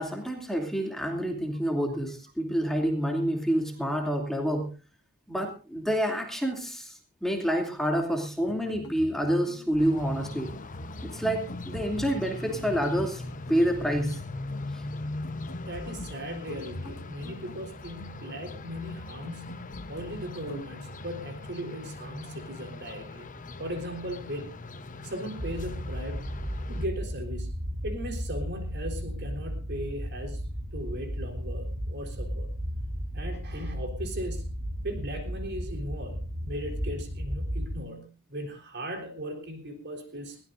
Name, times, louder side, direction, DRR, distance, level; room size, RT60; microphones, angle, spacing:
voice 1, 0.0-4.7 5.3-10.5 11.0-13.2 13.5-14.2 14.7-14.8, equal, ahead, 2 dB, 2.6 m, -28 dB
sound 1, 8.4-20.7, left 1 dB, 70° left, 1.5 m, -45 dB
sound 2, 9.8-26.9, left 2 dB, 35° left, 1.0 m, -40 dB
voice 2, 15.7-23.3 23.6-24.5 25.0-26.2 26.7-27.5 27.8-30.4 30.7-32.5 33.1-34.6 34.8-40.4, equal, 50° right, 4 dB, 3.7 m, -38 dB
sound 3, 25.4-37.8, equal, 75° right, 7.7 m, -34 dB
21.0 x 16.5 x 2.6 m, 0.32 s
head